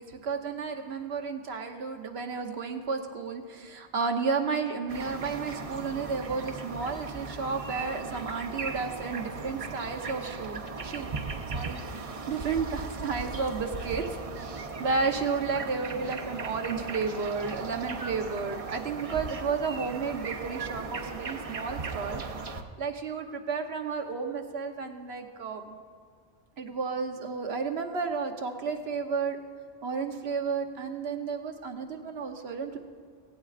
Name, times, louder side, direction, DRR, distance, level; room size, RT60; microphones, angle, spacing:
voice 1, 0.0-11.1 11.5-11.8 12.3-22.2 22.8-25.8 26.6-29.4 29.8-32.8, right 5 dB, 85° right, 5 dB, 1.3 m, -32 dB
sound 1, 4.9-22.6, right 4 dB, 40° right, 0.7 m, -37 dB
17.0 x 17.0 x 2.5 m, 2.1 s
omnidirectional pair, 1.0 m